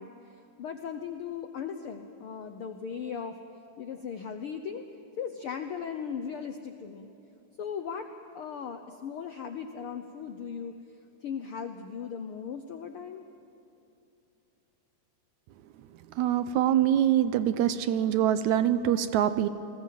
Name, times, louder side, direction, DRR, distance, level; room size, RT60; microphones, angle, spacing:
voice 1, 0.0-3.4 3.8-4.8 5.2-7.1 7.6-10.7 11.2-13.2, left 7 dB, 75° left, 7 dB, 1.2 m, -38 dB
voice 2, 16.2-19.5, right 10 dB, 75° right, 12 dB, 1.9 m, -24 dB
29.0 x 20.5 x 7.6 m, 2.9 s
omnidirectional pair, 3.6 m